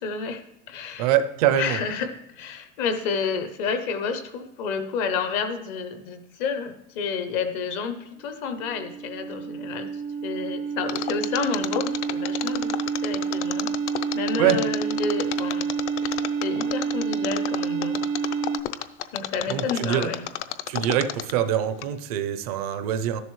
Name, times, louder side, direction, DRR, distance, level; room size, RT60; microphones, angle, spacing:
voice 1, 0.0-1.1 1.6-9.9 10.2-12.7 13.0-13.7 14.1-15.7 16.4-18.0 19.1-20.3, left 5 dB, 25° left, 9 dB, 0.5 m, -30 dB
voice 2, 1.0-1.8 14.4-14.6 19.5-20.1 20.7-23.2, right 10 dB, 30° right, 12 dB, 0.5 m, -24 dB
sound 1, 8.4-18.6, right 6 dB, 80° right, 0.9 m, -29 dB
Mechanisms, 10.9-21.5 21.8-21.9, left 13 dB, 65° left, 0.7 m, -31 dB
12.5 x 11.0 x 3.1 m, 0.89 s
supercardioid pair, 175°, 37 cm